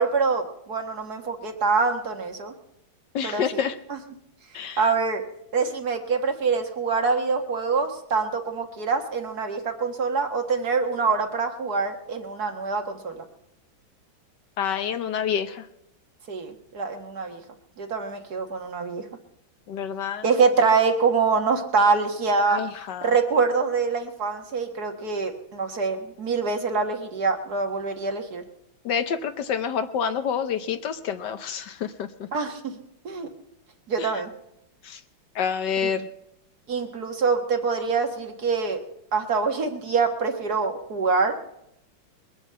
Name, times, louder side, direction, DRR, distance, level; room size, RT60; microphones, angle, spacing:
voice 1, 0.0-2.5 3.2-3.6 3.9-4.0 4.8-5.2 5.5-13.2 16.3-17.4 17.8-19.1 20.2-22.6 23.0-28.4 32.3-32.8 33.1-33.3 33.9-34.3 35.8-35.9 36.7-38.8 39.1-41.4, right 4 dB, 55° right, 5 dB, 1.9 m, -25 dB
voice 2, 3.1-3.7 4.5-4.8 14.6-15.6 19.7-20.2 22.5-23.1 28.8-32.1 34.0-34.1 34.8-35.0 35.3-36.1, left 7 dB, 65° left, 10 dB, 1.4 m, -28 dB
21.5 x 8.0 x 7.5 m, 0.81 s
omnidirectional pair, 2.1 m